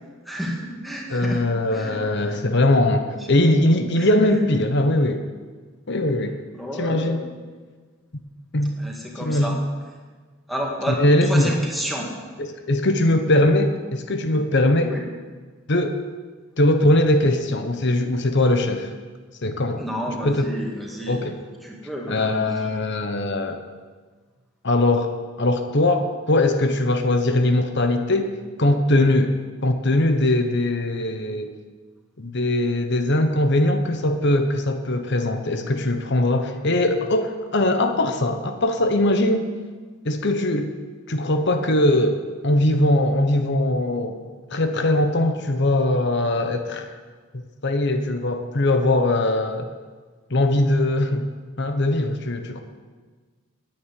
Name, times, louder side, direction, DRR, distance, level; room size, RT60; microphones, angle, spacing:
voice 1, 0.2-1.4 1.7-2.4 4.0-4.4 6.5-7.4 8.8-9.6 10.5-12.1 14.7-15.0 19.8-21.2 21.6-22.7, equal, ahead, -1 dB, 2.2 m, -31 dB
voice 2, 1.1-5.2 5.9-6.4 6.8-7.2 8.5-8.7 9.3-9.6 10.9-11.5 12.4-14.9 15.7-16.0 16.6-18.9 19.4-19.8 20.2-20.5 21.1-21.4 22.1-23.6 24.6-25.1 25.4-28.3 28.6-29.3 29.6-31.5 32.2-39.5 40.0-40.7 41.1-44.2 44.5-46.9 47.3-49.7 50.3-51.3 51.6-52.6, left 1 dB, 55° left, 6 dB, 1.0 m, -21 dB
10.5 x 8.9 x 9.4 m, 1.4 s
head